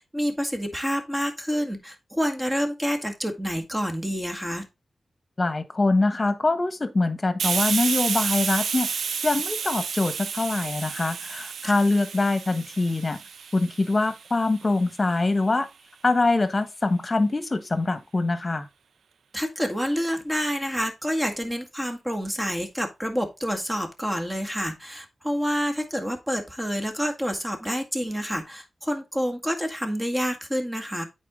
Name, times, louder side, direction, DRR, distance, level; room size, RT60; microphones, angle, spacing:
voice 1, 0.0-4.6 11.6-11.7 19.3-31.0, equal, 15° right, 1.8 m, -28 dB
voice 2, 5.4-8.9 9.2-13.2 13.5-15.7 16.0-18.7, left 2 dB, 40° left, 1.2 m, -24 dB
Hiss, 7.4-14.8, right 6 dB, 85° right, 0.3 m, -30 dB
8.3 x 4.6 x 3.7 m
cardioid pair, 50°, 0 cm